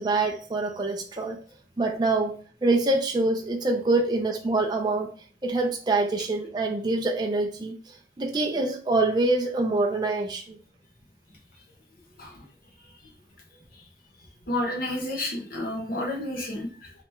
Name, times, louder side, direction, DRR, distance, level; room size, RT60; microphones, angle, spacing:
voice 1, 0.0-1.4 1.8-2.3 2.6-5.1 5.4-10.6, right 2 dB, 25° right, 1 dB, 0.4 m, -25 dB
voice 2, 14.5-16.9, left 1 dB, 55° left, -1 dB, 0.8 m, -30 dB
3.3 x 2.9 x 4.3 m, 0.43 s
head